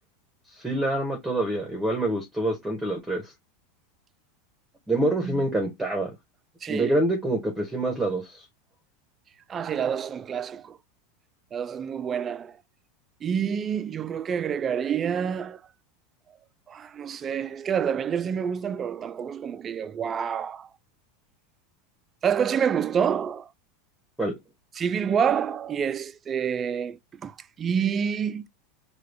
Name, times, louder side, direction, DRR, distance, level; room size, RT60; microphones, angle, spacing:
voice 1, 0.6-3.3 4.9-6.1 6.7-8.4 24.2-24.3, right 1 dB, 5° right, 0.8 m, -26 dB
voice 2, 6.6-7.0 9.5-10.8 11.5-12.6 13.2-15.6 16.7-20.7 22.2-23.5 24.7-28.5, right 7 dB, 25° right, 0.3 m, -28 dB
4.8 x 2.2 x 3.3 m
supercardioid pair, 145°, 0 cm